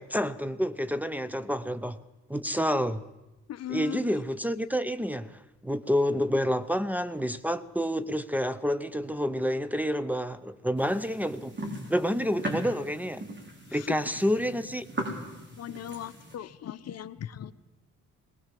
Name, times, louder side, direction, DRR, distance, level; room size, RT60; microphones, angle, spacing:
voice 1, 0.0-2.0 2.3-3.0 3.7-11.5 11.9-13.3 13.7-14.9, equal, 5° right, 8 dB, 0.8 m, -29 dB
voice 2, 3.5-4.0 13.7-14.0 15.6-17.5, left 11 dB, 55° left, 14 dB, 0.8 m, -38 dB
sound 1, 10.8-16.4, right 1 dB, 35° right, 4.5 m, -39 dB
19.5 x 18.5 x 7.6 m, 1.0 s
cardioid pair, 90°, 30 cm